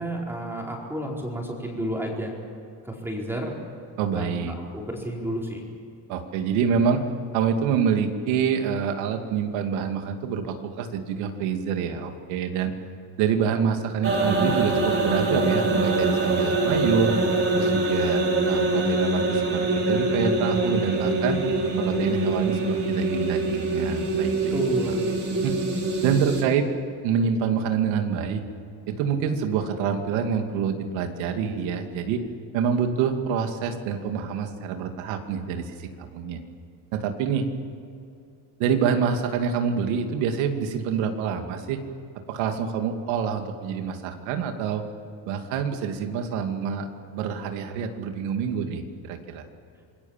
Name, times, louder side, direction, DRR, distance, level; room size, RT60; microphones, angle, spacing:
voice 1, 0.0-2.3 2.8-3.5 4.1-4.4 4.7-5.6 24.5-25.1, equal, 5° right, -2 dB, 4.6 m, -31 dB
voice 2, 4.0-4.6 6.1-7.0 7.3-12.7 13.2-17.2 17.6-21.4 21.8-24.5 25.4-25.5 26.0-26.7 27.0-28.4 28.9-32.2 32.5-36.4 36.9-37.5 38.6-41.8 42.3-44.8 45.3-49.4, right 7 dB, 90° right, 5 dB, 2.6 m, -26 dB
sound 1, 14.0-26.4, right 2 dB, 30° right, 4.3 m, -24 dB
27.5 x 20.0 x 7.5 m, 2.5 s
cardioid pair, 140°, 47 cm